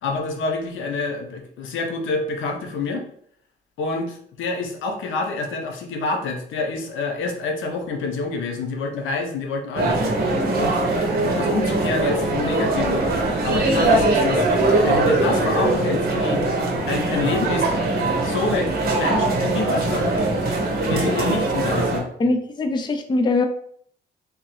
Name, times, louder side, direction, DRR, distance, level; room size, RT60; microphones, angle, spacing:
voice 1, 0.0-3.1 3.8-10.0 10.6-13.0 13.4-14.5 14.8-16.4 16.9-17.7 18.2-20.1 20.9-22.1, left 3 dB, 80° left, 3 dB, 0.7 m, -27 dB
sound 1, 9.8-22.0, right 2 dB, 50° right, 1.1 m, -21 dB
voice 2, 22.2-23.4, left 2 dB, 25° left, 6 dB, 0.4 m, -21 dB
3.5 x 2.9 x 3.0 m, 0.63 s
cardioid pair, 90°, 20 cm